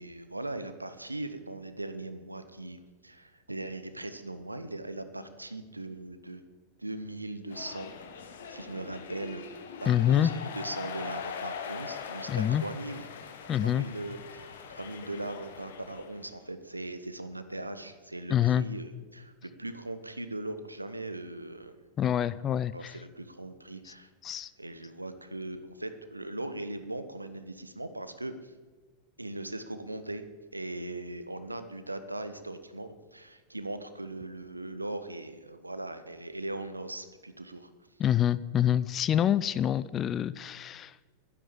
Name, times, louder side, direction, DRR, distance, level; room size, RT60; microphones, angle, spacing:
voice 1, 0.0-6.4 6.8-7.9 8.2-9.5 9.8-13.0 13.6-21.8 22.7-28.5 29.2-30.3 30.5-37.7, right 2 dB, 85° right, 10 dB, 0.9 m, -39 dB
sound 1, 7.5-16.3, left 6 dB, 60° left, 1.3 m, -42 dB
voice 2, 9.9-10.3 12.3-12.6 13.5-13.8 18.3-18.7 22.0-23.0 23.8-23.9 24.2-24.5 38.0-41.0, left 10 dB, 30° left, 17 dB, 0.4 m, -26 dB
11.0 x 10.0 x 7.0 m, 1.4 s
figure-of-eight pair, 90°, 0 cm